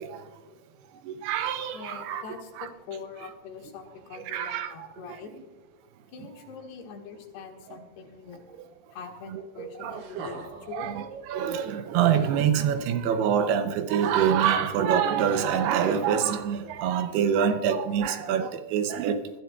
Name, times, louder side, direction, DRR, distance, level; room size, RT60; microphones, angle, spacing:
voice 1, 1.2-2.2 2.6-2.7 4.3-4.7 9.3-10.0 10.7-11.0 11.3-19.2, right 8 dB, 80° right, 9 dB, 2.5 m, -25 dB
voice 2, 1.7-5.3 6.1-8.4 8.9-10.9, left 6 dB, 80° left, 2 dB, 3.6 m, -43 dB
sound 1, 9.9-10.8 11.9-12.9 14.0-14.6 15.7-16.9 17.9-18.0, right 4 dB, 60° right, 2.7 m, -42 dB
20.5 x 12.5 x 2.3 m, 1.4 s
omnidirectional pair, 4.8 m